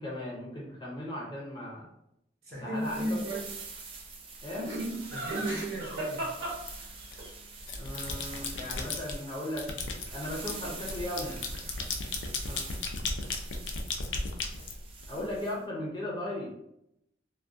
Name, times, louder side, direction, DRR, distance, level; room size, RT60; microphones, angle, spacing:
voice 1, 0.0-1.9 2.5-3.4 4.4-4.7 7.8-11.4 12.5-12.6 15.1-16.5, left 1 dB, 25° left, -3 dB, 0.6 m, -37 dB
voice 2, 2.4-3.4 5.1-6.3 12.9-13.0 15.1-15.2, right 1 dB, 55° right, -4 dB, 0.8 m, -35 dB
sound 1, 2.7-15.6, right 4 dB, 30° right, 0.4 m, -46 dB
Laughter, 4.6-7.3 10.1-10.9 11.1-11.7, right 1 dB, 85° right, 1.0 m, -36 dB
sound 2, 6.7-7.2 7.6-9.2 9.6-15.3, left 3 dB, 75° left, 0.4 m, -35 dB
2.3 x 2.2 x 2.5 m, 0.80 s
head